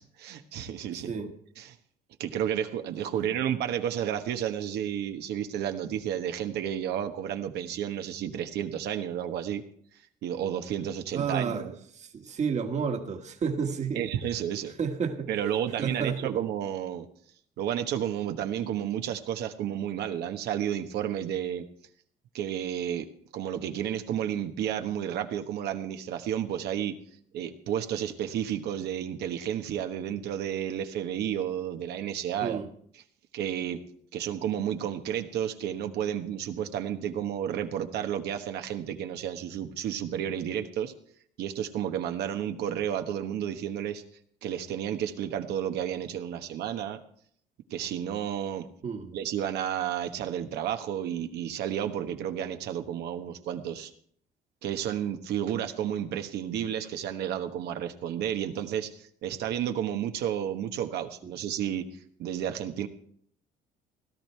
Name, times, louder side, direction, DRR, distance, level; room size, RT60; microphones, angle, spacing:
voice 1, 0.0-1.1 1.6-1.8 2.2-9.6 10.2-11.8 13.9-14.7 15.3-17.1 17.6-21.6 22.3-23.1 23.3-26.9 27.3-32.6 32.9-33.0 33.3-33.8 34.1-40.9 41.4-44.0 44.4-47.0 47.7-48.6 49.1-53.9 54.6-61.8 62.2-62.9, right 10 dB, 75° right, 1.3 m, -31 dB
voice 2, 11.1-11.7 12.0-14.0 14.8-15.3 15.8-16.3 32.4-32.7 48.8-49.1, right 6 dB, 40° right, 1.7 m, -31 dB
17.0 x 12.0 x 4.5 m
cardioid pair, 110°, 17 cm